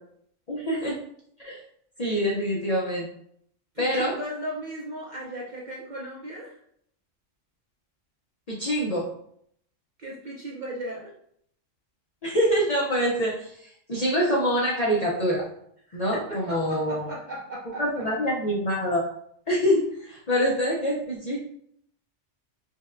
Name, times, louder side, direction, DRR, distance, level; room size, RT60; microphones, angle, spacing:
voice 1, 0.5-1.0 1.4-1.6 2.0-3.1 3.8-4.1 8.5-9.1 12.2-15.4 15.9-17.1 17.8-19.0 19.5-21.4, equal, 45° left, -4 dB, 0.5 m, -25 dB
voice 2, 3.7-6.6 10.0-11.1 15.9-18.1, right 1 dB, 55° right, -4 dB, 0.5 m, -36 dB
5.3 x 2.2 x 2.5 m, 0.67 s
omnidirectional pair, 1.3 m